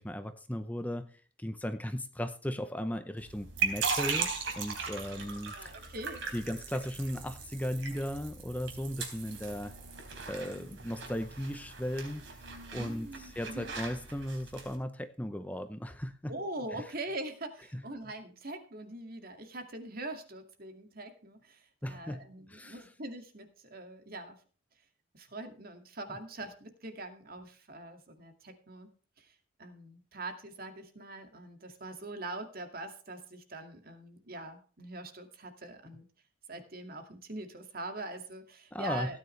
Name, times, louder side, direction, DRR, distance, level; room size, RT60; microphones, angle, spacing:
voice 1, 0.0-4.3 4.5-5.9 6.3-9.7 10.3-12.2 12.7-16.3 16.7-16.8 17.7-17.8 21.8-22.2 22.5-22.9 38.7-39.2, equal, 10° left, 9 dB, 0.7 m, -36 dB
sound 1, 3.2-14.8, right 5 dB, 75° right, 3.9 m, -38 dB
voice 2, 5.1-6.2 12.7-13.7 16.3-24.4 25.1-28.9 29.2-36.1 36.5-39.2, right 2 dB, 50° right, 6 dB, 2.2 m, -43 dB
16.5 x 9.7 x 3.3 m, 0.39 s
head